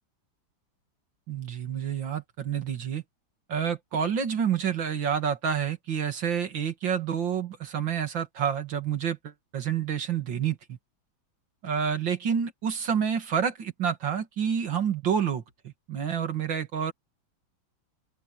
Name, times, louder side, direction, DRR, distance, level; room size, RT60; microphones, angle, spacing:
voice 1, 1.3-3.0 3.5-10.8 11.6-16.9, right 8 dB, 70° right, 2.8 m, -28 dB
open air
omnidirectional pair, 2.2 m